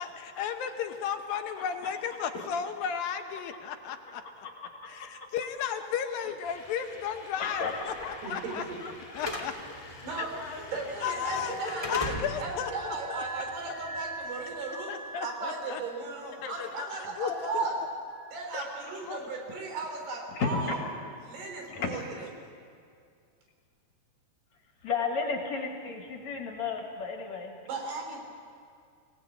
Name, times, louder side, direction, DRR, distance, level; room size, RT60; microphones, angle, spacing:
voice 1, 0.0-4.5 4.9-8.6 9.1-9.5 10.2-10.3 11.0-13.2 14.9-15.8 16.4-17.3 19.1-19.2, left 8 dB, 75° left, 6 dB, 2.6 m, -34 dB
voice 2, 1.3-1.9 2.3-2.5 4.4-4.7 5.0-5.1 7.4-9.2 10.3-12.0 12.7-12.8 13.7-14.1 16.6-17.4 19.5-19.6 20.3-20.8 21.7-21.9 24.8-27.5, left 5 dB, 50° left, 2 dB, 3.1 m, -35 dB
Slam / Alarm, 6.4-14.5, left 1 dB, 15° left, 1.2 m, -41 dB
voice 3, 8.2-8.8 10.0-10.3 10.7-11.9 12.4-14.9 15.2-17.8 18.3-20.8 21.2-22.0 27.7-28.2, right 3 dB, 85° right, 2 dB, 5.6 m, -36 dB
Wind instrument woodwind instrument, 11.4-18.4, right 3 dB, 35° right, 6.1 m, -45 dB
24.5 x 18.0 x 8.6 m, 2.3 s
omnidirectional pair, 4.5 m